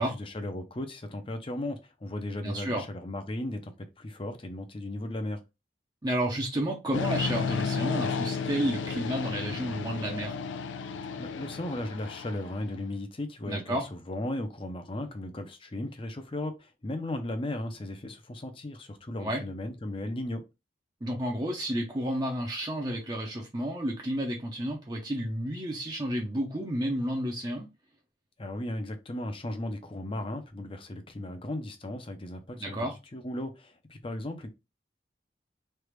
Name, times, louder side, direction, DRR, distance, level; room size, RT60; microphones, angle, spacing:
voice 1, 0.0-5.4 11.2-20.4 28.4-34.5, left 1 dB, 30° left, 0.6 m, -36 dB
voice 2, 2.4-2.8 6.0-10.3 13.5-13.9 19.2-19.4 21.0-27.7 32.6-33.0, right 1 dB, 20° right, 0.6 m, -31 dB
sound 1, 6.9-12.7, left 5 dB, 85° left, 0.4 m, -33 dB
3.3 x 2.4 x 3.1 m
head